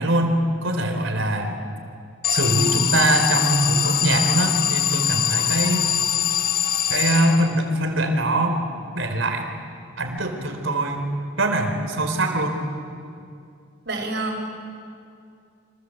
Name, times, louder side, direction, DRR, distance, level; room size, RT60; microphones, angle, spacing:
voice 1, 0.0-1.6 2.3-5.9 6.9-8.6 9.0-9.5 10.0-11.1 11.4-12.6, right 1 dB, 85° right, 5 dB, 4.2 m, -22 dB
Alarm, 2.2-7.8, left 9 dB, 50° left, 0.9 m, -23 dB
voice 2, 13.9-14.6, right 2 dB, 60° right, 2 dB, 6.1 m, -28 dB
29.0 x 25.5 x 8.0 m, 2.4 s
head